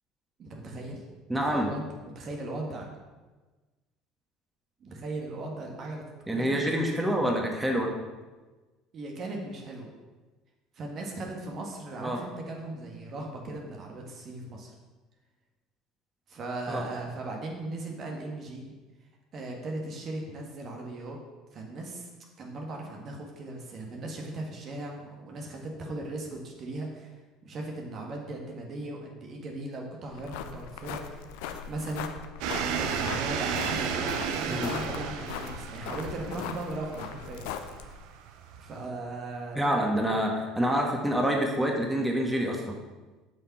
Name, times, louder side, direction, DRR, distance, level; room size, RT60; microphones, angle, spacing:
voice 1, 0.4-1.0 1.3-1.9 2.1-2.9 4.8-6.0 6.3-6.6 8.9-9.9 10.7-14.7 16.3-18.7 19.3-21.2 21.5-22.1 22.4-27.1 27.4-31.2 31.7-32.1 32.6-37.4 37.8-38.0 38.6-39.7, right 2 dB, 45° right, 0 dB, 1.7 m, -38 dB
voice 2, 1.3-1.7 6.3-7.9 12.0-12.2 16.7-16.8 34.5-34.7 39.5-42.8, equal, 10° right, 0 dB, 1.7 m, -27 dB
sound 1, 30.1-38.0, left 8 dB, 70° left, 0.6 m, -39 dB
sound 2, 32.4-38.9, right 7 dB, 65° right, 0.7 m, -33 dB
7.5 x 6.0 x 6.0 m, 1.2 s
hypercardioid pair, 65°, 0 cm